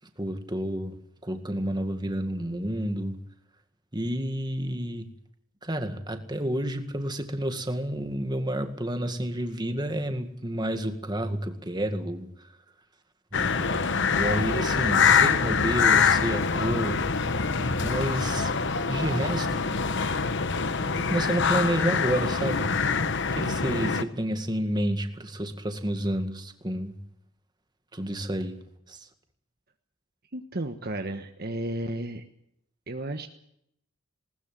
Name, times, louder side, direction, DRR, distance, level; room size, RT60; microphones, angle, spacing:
voice 1, 0.2-1.0 1.2-3.2 3.9-5.1 5.6-12.5 13.3-17.0 17.8-18.5 18.9-19.7 21.0-22.8 23.3-27.0 27.9-28.6 28.9-29.1, right 1 dB, 20° right, 2.0 m, -30 dB
sound 1, 13.3-24.0, left 5 dB, 55° left, 1.1 m, -25 dB
voice 2, 30.3-32.2 32.9-33.3, right 1 dB, 45° right, 1.3 m, -33 dB
20.5 x 19.5 x 7.6 m
head